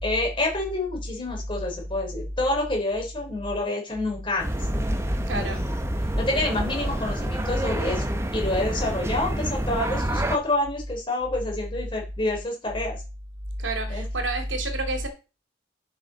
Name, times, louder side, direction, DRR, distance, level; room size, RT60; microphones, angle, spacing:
voice 1, 0.0-4.7 5.3-5.5 6.2-8.0 8.3-13.0 13.9-14.0, left 2 dB, 25° left, 3.8 m, -28 dB
sound 1, 4.4-10.4, right 1 dB, 15° right, 0.9 m, -27 dB
voice 2, 5.3-5.6 13.6-15.1, right 2 dB, 80° right, 2.7 m, -28 dB
11.5 x 6.6 x 4.1 m
head